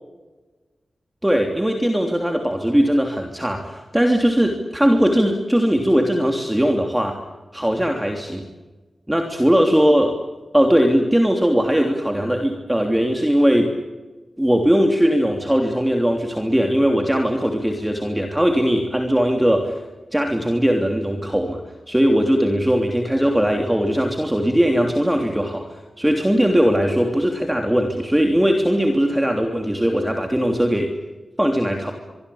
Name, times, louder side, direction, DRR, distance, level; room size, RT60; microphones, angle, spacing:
voice 1, 1.2-7.2 7.5-8.4 9.1-10.1 10.5-13.7 14.4-19.7 20.1-21.6 21.9-30.9 31.4-31.9, equal, 10° right, 3 dB, 3.2 m, -19 dB
25.5 x 23.0 x 8.6 m, 1.2 s
wide cardioid pair, 110°, 0 cm